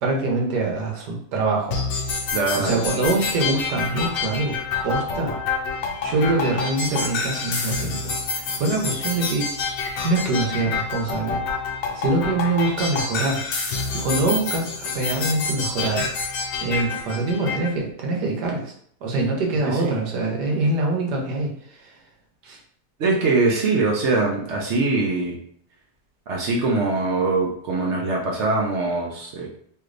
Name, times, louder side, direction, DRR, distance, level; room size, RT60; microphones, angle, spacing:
voice 1, 0.0-1.8 2.5-4.6 4.8-5.4 6.0-9.5 10.0-11.4 11.9-13.4 13.9-16.0 16.6-18.7 19.0-21.5 21.8-21.9 22.4-22.6, right 2 dB, 85° right, -1 dB, 1.4 m, -24 dB
sound 1, 1.7-17.7, left 4 dB, 65° left, 0.9 m, -28 dB
voice 2, 2.3-2.8 19.7-20.0 23.0-25.4 26.3-29.5, right 3 dB, 60° right, -2 dB, 0.7 m, -22 dB
3.2 x 3.1 x 2.5 m, 0.62 s
omnidirectional pair, 1.7 m